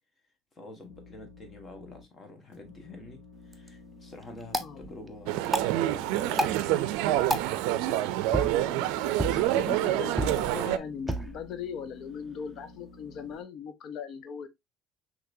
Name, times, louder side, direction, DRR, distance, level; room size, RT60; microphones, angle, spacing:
voice 1, 0.5-7.1 8.4-9.5, left 2 dB, 25° left, 1.4 m, -47 dB
sound 1, 0.8-2.0 2.5-13.3, left 4 dB, 75° left, 1.5 m, -52 dB
sound 2, 3.3-13.4, right 1 dB, 10° right, 0.6 m, -36 dB
voice 2, 4.6-4.9 9.4-14.5, left 7 dB, 55° left, 0.7 m, -39 dB
sound 3, 5.3-10.8, right 14 dB, 85° right, 0.4 m, -27 dB
5.9 x 3.0 x 2.6 m
cardioid pair, 125°, 0 cm